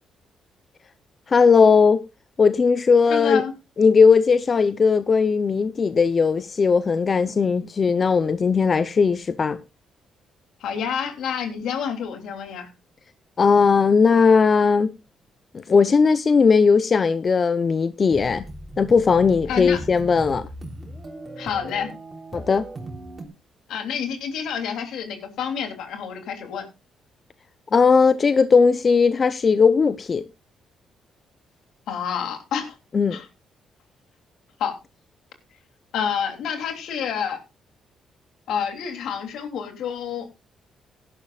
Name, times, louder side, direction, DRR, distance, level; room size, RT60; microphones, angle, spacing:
voice 1, 1.3-2.0 2.4-3.4 3.8-9.6 13.4-14.9 15.5-18.4 18.8-20.5 22.3-22.7 27.7-30.2 32.9-33.2, left 5 dB, 40° left, 0.7 m, -18 dB
voice 2, 3.1-3.5 10.6-12.7 19.5-19.8 21.4-21.9 23.7-26.6 31.9-32.7 33.1-33.3 34.6-34.7 35.9-37.4 38.5-40.3, left 7 dB, 80° left, 3.0 m, -28 dB
sound 1, 18.1-23.3, right 1 dB, 30° right, 3.5 m, -38 dB
17.5 x 11.5 x 2.4 m
cardioid pair, 90°, 0 cm